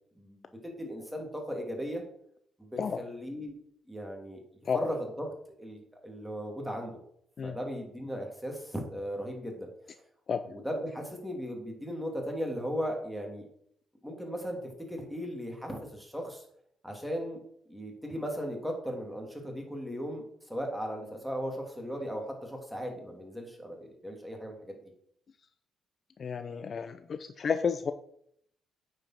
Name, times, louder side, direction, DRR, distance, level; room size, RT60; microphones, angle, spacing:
voice 1, 0.1-2.0 2.6-3.5 3.9-4.4 4.7-5.3 5.6-7.0 7.4-9.7 10.4-13.4 14.0-16.4 16.8-17.4 17.7-24.8, equal, ahead, 1 dB, 2.8 m, -37 dB
voice 2, 26.2-27.9, left 6 dB, 50° left, 10 dB, 0.5 m, -31 dB
9.2 x 5.4 x 5.9 m, 0.69 s
cardioid pair, 90°, 0 cm